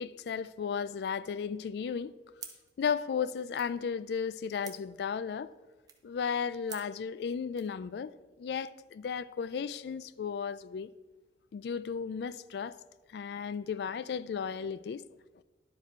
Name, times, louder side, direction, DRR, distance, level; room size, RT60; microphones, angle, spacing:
voice 1, 0.0-2.1 2.8-5.5 6.0-8.1 8.4-10.9 11.5-12.7 13.1-15.0, left 6 dB, 65° left, 0.3 m, -34 dB
sound 1, 2.4-7.8, right 7 dB, 20° right, 0.7 m, -52 dB
11.0 x 4.8 x 4.5 m
head